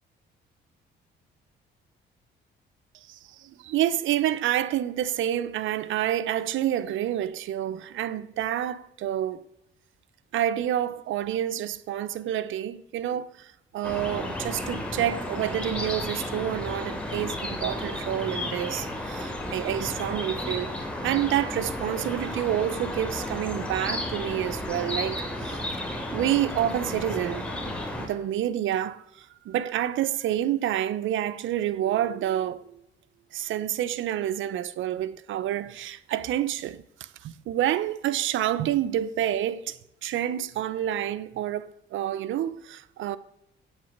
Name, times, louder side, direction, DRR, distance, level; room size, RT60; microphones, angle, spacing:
voice 1, 3.1-9.5 10.3-20.7 21.0-27.5 28.0-32.8 33.3-43.2, right 11 dB, 75° right, 0.7 m, -28 dB
sound 1, 13.8-28.1, left 1 dB, 5° left, 3.2 m, -33 dB
8.9 x 8.7 x 6.5 m
cardioid pair, 90°, 20 cm